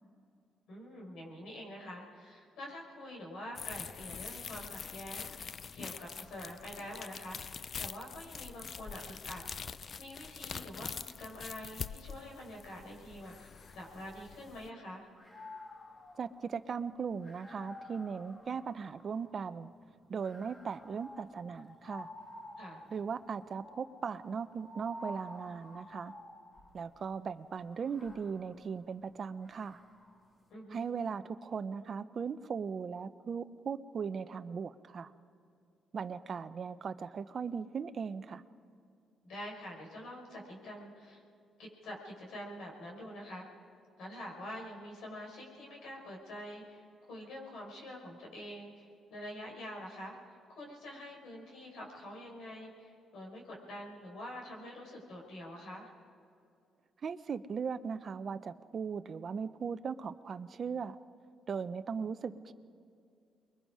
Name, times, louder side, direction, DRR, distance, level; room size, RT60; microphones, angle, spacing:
voice 1, 0.7-9.4 10.0-15.1 22.6-22.8 30.5-30.8 39.2-41.2 41.6-43.5 44.0-55.9, left 1 dB, 75° left, -1 dB, 5.4 m, -46 dB
sound 1, 3.6-14.7, left 6 dB, 45° left, 0.5 m, -44 dB
sound 2, 13.5-14.7 15.1-19.5 20.2-26.9 27.6-30.2, left 1 dB, 30° left, 2.3 m, -52 dB
voice 2, 16.2-19.7 20.1-22.1 22.9-26.1 26.7-29.8 30.7-35.1 35.9-38.4 57.0-61.0 61.5-62.5, right 6 dB, 50° right, 11 dB, 0.7 m, -38 dB
29.5 x 22.0 x 4.9 m, 2.4 s
cardioid pair, 90°, 0 cm